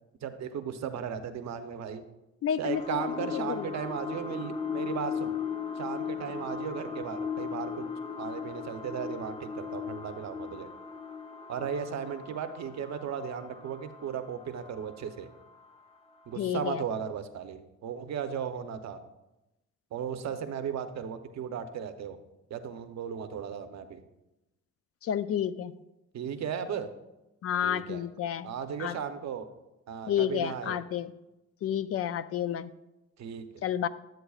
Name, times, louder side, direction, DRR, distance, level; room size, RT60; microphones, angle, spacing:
voice 1, 0.2-2.0 2.6-5.4 5.8-7.9 8.2-10.7 11.5-15.3 16.3-19.0 19.9-22.2 22.5-24.0 26.1-26.9 27.6-28.0 28.4-29.5 29.9-30.8 33.2-33.4, right 7 dB, 60° right, 8 dB, 0.8 m, -36 dB
voice 2, 2.4-3.0 3.6-3.7 16.4-16.8 25.0-25.7 27.4-28.5 28.8-29.0 30.1-31.1 31.6-32.7 33.6-33.9, left 9 dB, 50° left, 14 dB, 0.4 m, -30 dB
sound 1, 2.7-15.9 16.4-16.5, left 6 dB, 20° left, 0.9 m, -38 dB
11.5 x 7.7 x 2.4 m, 0.98 s
cardioid pair, 90°, 30 cm